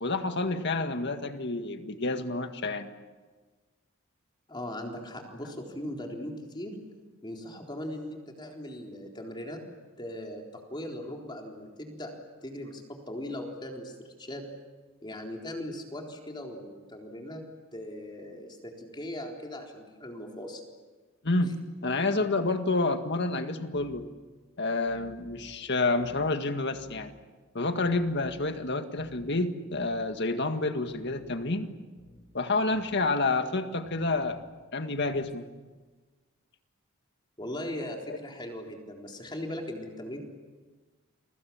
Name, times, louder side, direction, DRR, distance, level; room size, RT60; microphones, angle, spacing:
voice 1, 0.0-2.9 21.2-21.6 21.8-24.1 24.6-27.1 27.6-31.7 32.3-34.4 34.7-35.5 38.1-38.2, left 2 dB, 55° left, 7 dB, 1.8 m, -29 dB
voice 2, 4.5-6.7 7.2-9.6 10.0-12.1 12.4-14.4 15.0-17.4 17.7-20.6 37.4-40.2, left 1 dB, 20° left, 1 dB, 3.9 m, -39 dB
sound 1, 23.7-24.1 24.8-25.6 26.0-26.3 26.7-27.1 27.8-28.6 29.0-29.3 29.7-30.1 30.9-31.5 32.0-32.3 32.7-33.0 33.8-34.5 35.0-35.3, left 1 dB, 75° left, 5.6 m, -53 dB
30.0 x 23.5 x 7.2 m, 1.3 s
head